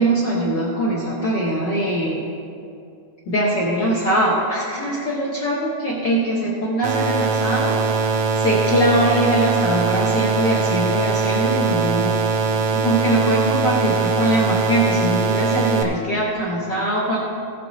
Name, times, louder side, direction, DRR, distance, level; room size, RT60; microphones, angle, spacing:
voice 1, 0.0-2.2 3.3-7.8 8.3-12.1 12.7-17.2, right 1 dB, 80° left, -4 dB, 1.0 m, -22 dB
sound 1, 6.8-15.8, right 4 dB, 90° right, 2.7 m, -21 dB
16.5 x 6.6 x 3.9 m, 2.4 s
omnidirectional pair, 3.7 m